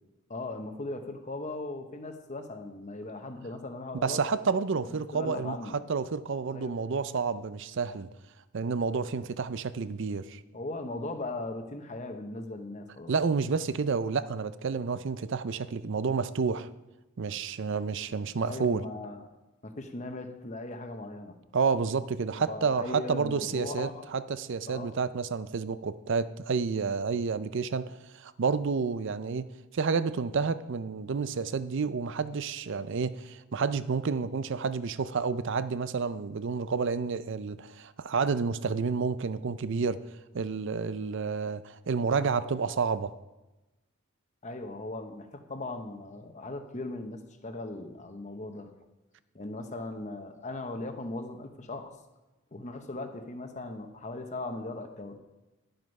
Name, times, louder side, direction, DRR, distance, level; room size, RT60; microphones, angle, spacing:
voice 1, 0.3-4.2 4.9-5.8 6.5-6.8 10.5-13.1 18.4-19.3 19.6-21.4 22.3-24.0 24.7-24.9 44.4-48.7 49.3-51.9 52.5-55.1, left 2 dB, 35° left, 0.9 m, -38 dB
voice 2, 4.0-8.1 8.5-10.4 13.1-16.7 17.2-18.8 21.5-29.5 29.7-40.0 40.3-43.1, right 5 dB, 55° right, 0.5 m, -30 dB
11.5 x 7.8 x 5.3 m
head